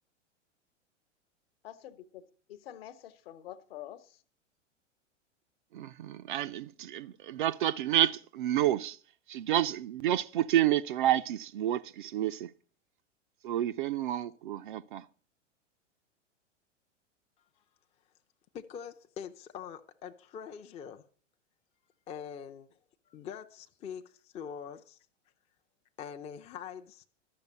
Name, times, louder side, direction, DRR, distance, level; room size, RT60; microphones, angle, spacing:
voice 1, 1.6-4.2, left 12 dB, 50° left, 1.2 m, -47 dB
voice 2, 5.7-9.0 9.3-12.5 13.4-15.0, right 12 dB, 45° right, 0.5 m, -29 dB
voice 3, 18.5-21.0 22.1-22.7 23.1-25.0 26.0-27.1, left 7 dB, 15° left, 0.6 m, -43 dB
12.5 x 6.7 x 8.0 m
figure-of-eight pair, 95°, 37 cm